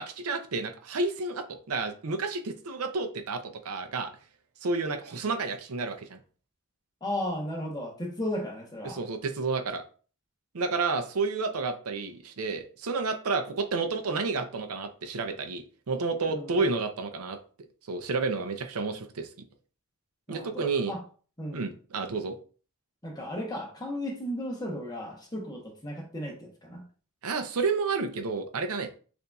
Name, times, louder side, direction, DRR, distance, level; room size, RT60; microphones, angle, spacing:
voice 1, 0.0-4.1 4.6-6.2 8.8-9.8 10.5-17.4 17.9-19.3 20.3-20.9 21.5-22.4 27.2-28.9, right 4 dB, 75° right, 7 dB, 0.6 m, -30 dB
voice 2, 7.0-9.0 16.3-16.6 20.3-21.0 21.4-21.7 23.0-26.9, left 1 dB, 15° left, 1 dB, 1.0 m, -35 dB
6.7 x 2.6 x 2.3 m, 0.39 s
head